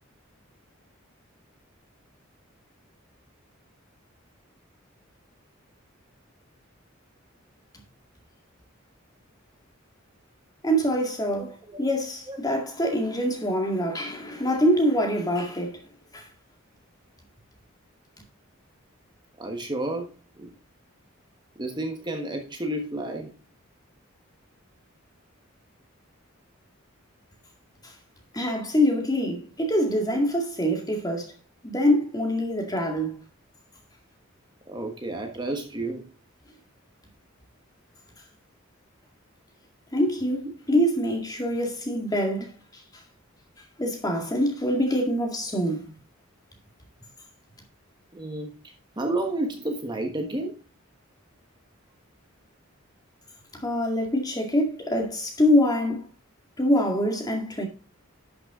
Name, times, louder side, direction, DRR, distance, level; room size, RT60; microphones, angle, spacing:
voice 1, 10.6-15.8 16.1-16.2 28.3-31.3 31.6-33.1 39.9-42.5 43.8-45.9 53.6-56.0 56.6-57.7, equal, 20° left, 2.0 m, -24 dB
voice 2, 11.4-11.8 12.3-12.4 19.4-20.1 20.4-20.5 21.6-23.3 28.9-29.0 34.7-36.1 40.4-40.8 41.9-42.0 48.1-48.5 49.0-50.6, right 1 dB, 20° right, 1.3 m, -31 dB
11.5 x 6.0 x 3.7 m
head